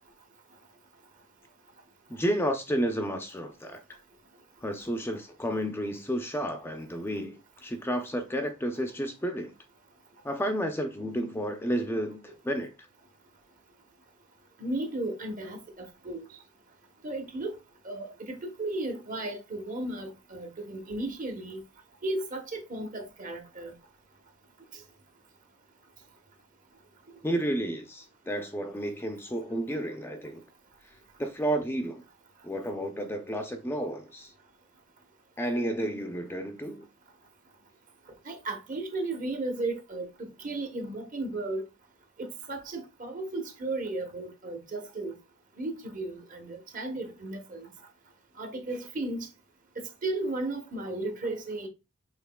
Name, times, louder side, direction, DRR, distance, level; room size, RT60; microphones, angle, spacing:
voice 1, 2.1-3.8 4.6-9.5 10.2-12.7 27.2-30.4 31.2-32.0 32.4-34.3 35.4-36.9, equal, 10° left, 0.5 m, -31 dB
voice 2, 14.6-16.2 17.0-17.6 17.8-21.6 22.0-23.7 38.3-41.6 42.2-45.1 45.6-47.7 48.4-49.3 49.8-51.7, right 2 dB, 40° right, 0.9 m, -35 dB
5.8 x 3.6 x 2.2 m
head